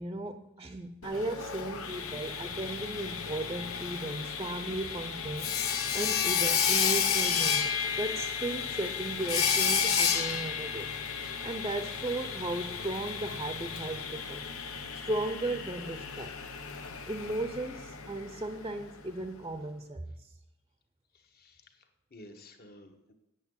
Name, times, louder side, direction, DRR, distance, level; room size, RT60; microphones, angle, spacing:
voice 1, 0.0-14.5 14.9-16.4 17.1-20.3, right 2 dB, 20° right, 8 dB, 0.6 m, -36 dB
Sawing, 1.0-18.8, left 7 dB, 90° left, 1.0 m, -32 dB
voice 2, 21.1-23.1, left 1 dB, 45° left, 6 dB, 1.3 m, -53 dB
8.1 x 7.9 x 7.8 m, 0.90 s
head